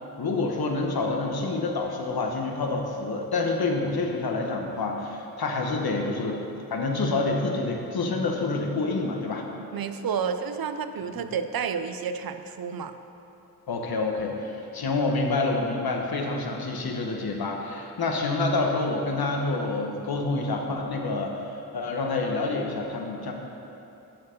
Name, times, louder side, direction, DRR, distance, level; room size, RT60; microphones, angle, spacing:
voice 1, 0.2-9.5 11.1-11.3 13.7-21.3 21.7-23.3, left 3 dB, 70° left, 1 dB, 1.1 m, -27 dB
voice 2, 9.7-12.9, right 6 dB, 65° right, 9 dB, 0.5 m, -30 dB
11.5 x 4.5 x 5.2 m, 2.8 s
wide cardioid pair, 120°, 38 cm